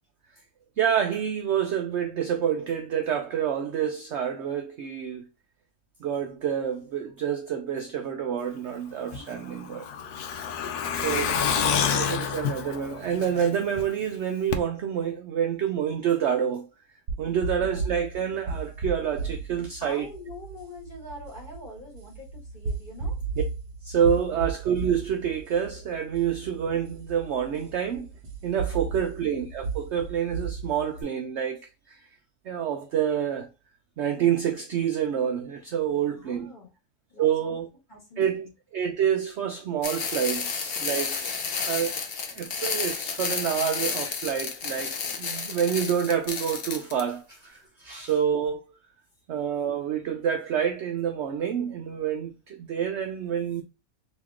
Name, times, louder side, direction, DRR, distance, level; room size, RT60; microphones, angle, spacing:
voice 1, 0.8-5.2 6.0-9.9 10.9-11.4 11.9-16.7 17.2-20.1 23.8-28.1 28.4-31.6 31.9-32.1 32.4-33.5 34.0-36.5 37.2-37.7 38.2-38.5 38.7-41.3 41.6-41.9 42.3-48.6 49.3-53.6, right 8 dB, 65° right, 0.7 m, -28 dB
Truck, 9.1-13.8 14.1-14.2 14.5-14.6, left 7 dB, 90° left, 1.1 m, -28 dB
sound 1, 17.1-31.0, right 4 dB, 50° right, 1.0 m, -35 dB
voice 2, 17.6-18.0 19.8-23.2 28.7-29.2 35.8-36.7 37.1-37.6 37.9-38.5 47.6-47.8, left 1 dB, 35° left, 1.4 m, -45 dB
sound 2, 39.8-47.0, left 5 dB, 55° left, 0.7 m, -31 dB
3.0 x 2.8 x 3.5 m
omnidirectional pair, 1.6 m